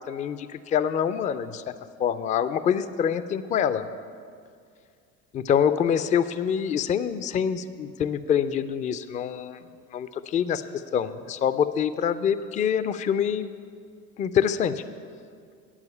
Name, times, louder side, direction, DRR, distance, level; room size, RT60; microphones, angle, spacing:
voice 1, 0.1-1.7 2.0-3.9 5.3-9.6 9.9-10.6 10.9-13.5 14.2-14.8, left 8 dB, 20° left, 13 dB, 0.4 m, -25 dB
9.2 x 7.2 x 8.6 m, 2.2 s
figure-of-eight pair, 65°, 38 cm